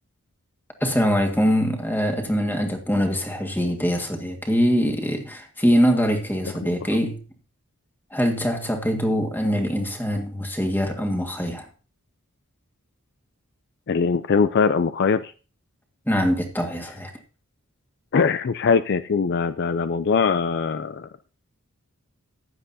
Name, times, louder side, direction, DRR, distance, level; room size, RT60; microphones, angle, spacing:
voice 1, 0.8-7.2 8.1-11.7 16.1-17.1, equal, 10° left, 1.7 m, -23 dB
voice 2, 13.9-15.3 18.1-21.1, left 5 dB, 50° left, 0.4 m, -21 dB
15.0 x 10.5 x 2.7 m
head